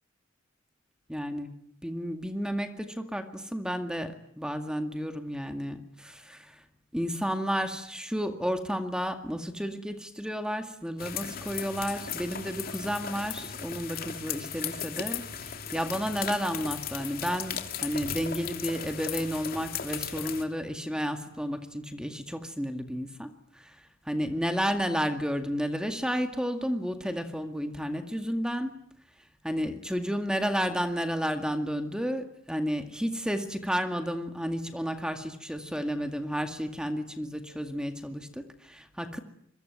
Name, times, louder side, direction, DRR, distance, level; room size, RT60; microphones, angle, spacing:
voice 1, 1.1-1.5 1.8-6.6 6.9-15.2 15.7-23.8 24.1-28.8 29.4-39.2, equal, 5° right, 7 dB, 2.0 m, -32 dB
sound 1, 11.0-20.4, left 8 dB, 50° left, 3.0 m, -37 dB
27.0 x 23.0 x 9.5 m, 0.70 s
head